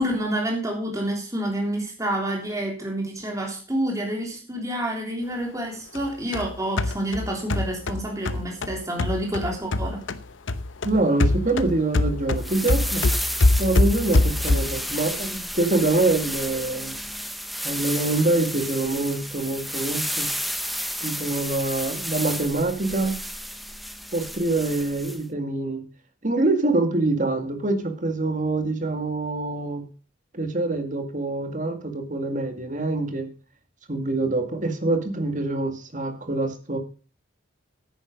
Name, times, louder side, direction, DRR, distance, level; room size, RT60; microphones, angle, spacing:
voice 1, 0.0-10.0, right 1 dB, 15° right, 0 dB, 3.3 m, -28 dB
sound 1, 6.0-10.2 10.5-14.9, left 2 dB, 70° left, 0.8 m, -23 dB
voice 2, 10.8-13.0 13.6-17.0 17.6-20.3 21.0-23.2 24.1-25.8 26.2-29.8 30.3-33.3 33.9-36.8, right 2 dB, 40° right, 7 dB, 2.0 m, -25 dB
sound 2, 12.4-25.2, equal, ahead, 0.6 m, -32 dB
10.5 x 9.5 x 5.2 m, 0.36 s
head